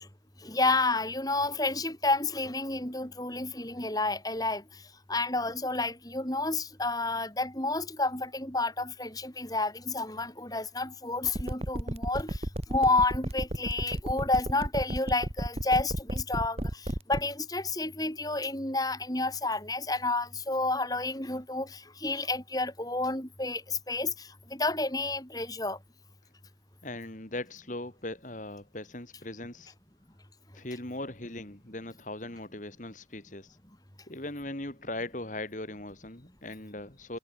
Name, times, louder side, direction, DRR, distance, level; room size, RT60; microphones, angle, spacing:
voice 1, 0.4-4.8 5.1-25.8, left 2 dB, 20° left, 4.5 m, -30 dB
sound 1, 11.2-17.2, right 1 dB, 35° right, 1.9 m, -32 dB
voice 2, 26.8-29.7 30.5-33.6 34.1-37.2, left 2 dB, 45° left, 2.7 m, -39 dB
head